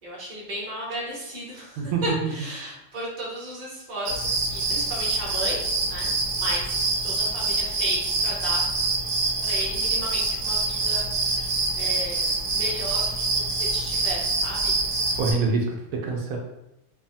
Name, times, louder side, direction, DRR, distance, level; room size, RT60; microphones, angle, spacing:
voice 1, 0.0-8.6 9.4-14.8, equal, 40° right, -4 dB, 0.9 m, -35 dB
voice 2, 1.8-2.3 15.2-16.4, right 4 dB, 90° right, 0 dB, 1.0 m, -25 dB
sound 1, 4.1-15.3, right 3 dB, 70° right, 1.0 m, -25 dB
2.8 x 2.1 x 2.6 m, 0.86 s
omnidirectional pair, 1.4 m